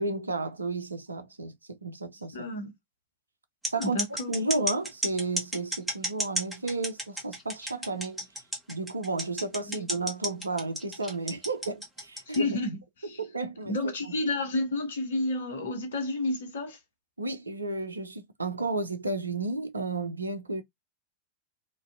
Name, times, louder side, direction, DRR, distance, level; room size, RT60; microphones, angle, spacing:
voice 1, 0.0-2.5 3.7-4.0 4.3-8.3 8.7-12.5 13.2-14.1 17.2-20.6, right 3 dB, 80° right, 0.4 m, -32 dB
voice 2, 2.3-2.7 3.8-4.3 9.6-9.8 12.3-13.2 13.7-16.8, left 2 dB, 60° left, 0.8 m, -31 dB
sound 1, 3.6-12.4, equal, 5° right, 0.9 m, -32 dB
2.5 x 2.2 x 2.3 m
figure-of-eight pair, 90°, 0 cm